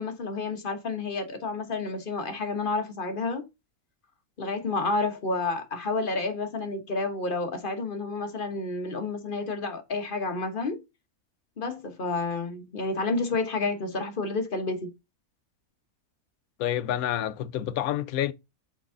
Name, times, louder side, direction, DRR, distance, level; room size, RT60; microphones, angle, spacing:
voice 1, 0.0-3.5 4.4-10.8 11.6-14.9, left 3 dB, 40° left, 1.2 m, -30 dB
voice 2, 16.6-18.3, left 11 dB, 75° left, 1.0 m, -28 dB
6.0 x 4.3 x 3.7 m
omnidirectional pair, 1.5 m